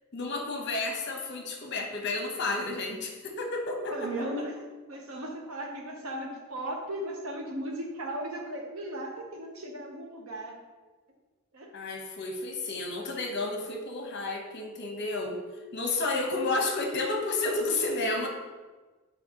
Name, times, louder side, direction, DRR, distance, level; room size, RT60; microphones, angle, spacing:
voice 1, 0.1-4.2 11.7-15.4 15.7-18.3, left 2 dB, 55° left, 2 dB, 0.9 m, -31 dB
voice 2, 3.9-4.5 4.9-10.6 11.5-11.7, right 1 dB, 85° right, 0 dB, 0.9 m, -36 dB
7.2 x 4.7 x 2.9 m, 1.3 s
head